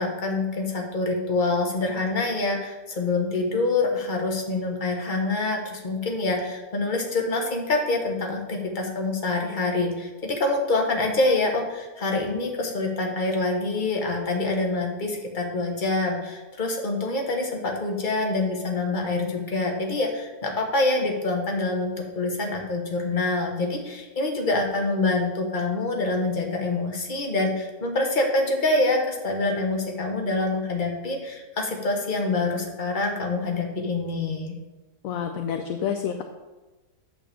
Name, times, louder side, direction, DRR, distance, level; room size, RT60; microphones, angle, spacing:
voice 1, 0.0-34.5, left 2 dB, 35° left, 1 dB, 1.3 m, -26 dB
voice 2, 35.0-36.2, left 8 dB, 65° left, 6 dB, 0.9 m, -28 dB
8.6 x 4.3 x 6.9 m, 1.2 s
omnidirectional pair, 1.7 m